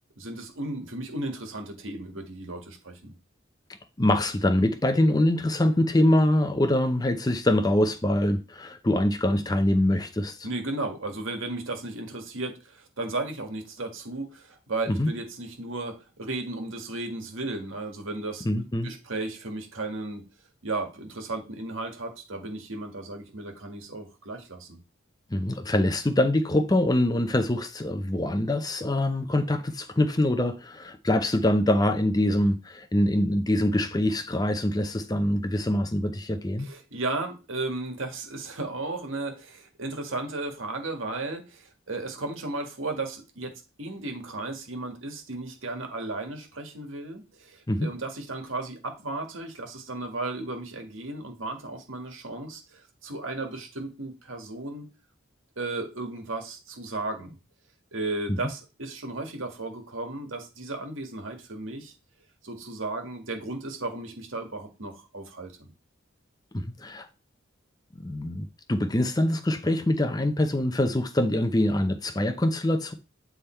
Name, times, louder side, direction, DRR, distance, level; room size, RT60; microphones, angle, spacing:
voice 1, 0.2-3.1 10.4-18.5 18.8-20.2 20.6-24.8 36.6-43.5 43.8-54.9 55.6-57.4 57.9-61.9 62.4-65.7, right 2 dB, 85° right, 1.7 m, -35 dB
voice 2, 4.0-10.5 14.9-15.1 18.4-18.9 25.3-36.7 47.7-47.9 66.5-67.1 68.0-72.9, left 1 dB, 20° left, 0.6 m, -24 dB
8.4 x 3.5 x 4.4 m
head